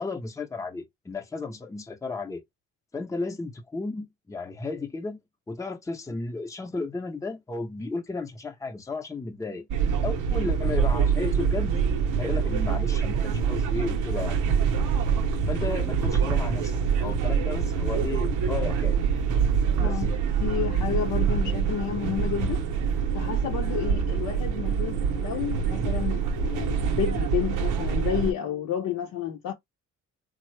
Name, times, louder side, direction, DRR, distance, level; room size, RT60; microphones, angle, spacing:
voice 1, 0.0-2.4 2.9-5.2 5.5-9.7 10.0-11.8 12.2-14.4 15.5-19.0 19.8-20.0, left 3 dB, 10° left, 0.6 m, -33 dB
sound 1, 9.7-28.3, right 6 dB, 80° right, 0.7 m, -25 dB
voice 2, 20.4-22.6 23.1-29.5, left 9 dB, 80° left, 0.7 m, -31 dB
3.4 x 2.0 x 3.1 m
cardioid pair, 90°, 30 cm